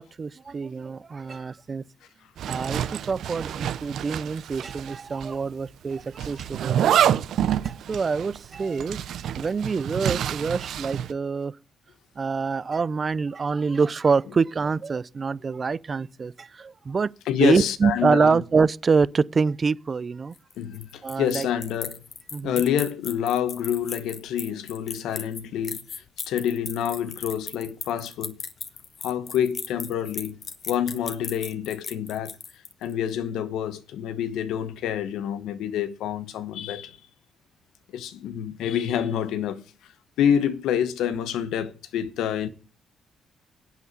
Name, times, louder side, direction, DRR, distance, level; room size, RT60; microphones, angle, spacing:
voice 1, 0.0-1.8 2.5-7.2 7.6-9.0 9.3-11.6 12.2-17.1 17.4-20.4 21.0-21.5 22.3-22.6, right 5 dB, 35° right, 0.5 m, -25 dB
Zipper (clothing), 2.4-5.0 5.2-5.3 6.2-11.1, right 10 dB, 70° right, 0.7 m, -27 dB
voice 2, 17.3-18.4 20.6-22.0 22.4-28.4 29.0-30.4 30.7-32.3 32.8-37.0 37.9-39.6 40.2-42.5, left 9 dB, 85° left, 1.2 m, -27 dB
sound 1, 20.3-32.9, left 6 dB, 50° left, 1.4 m, -37 dB
9.1 x 8.4 x 8.4 m
cardioid pair, 90°, 0 cm